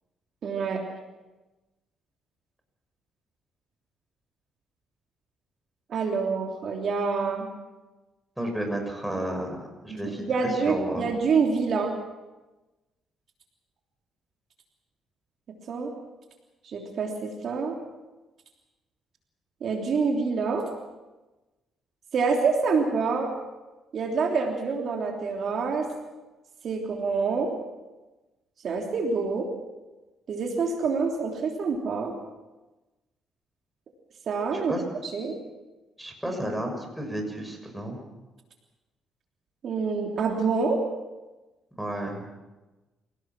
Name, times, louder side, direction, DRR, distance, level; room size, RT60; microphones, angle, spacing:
voice 1, 0.4-0.8 5.9-7.5 9.9-11.9 15.7-15.9 16.6-17.8 19.6-20.7 22.1-23.3 23.9-25.9 26.6-27.5 28.6-29.5 30.3-32.1 34.3-34.7 35.0-35.4 39.6-40.8, right 4 dB, 60° right, 2 dB, 3.2 m, -26 dB
voice 2, 8.4-10.3 10.6-11.0 34.5-34.8 36.0-38.0 41.8-42.2, right 1 dB, 5° right, 2 dB, 6.6 m, -32 dB
27.5 x 17.5 x 6.2 m, 1.1 s
cardioid pair, 90°, 0 cm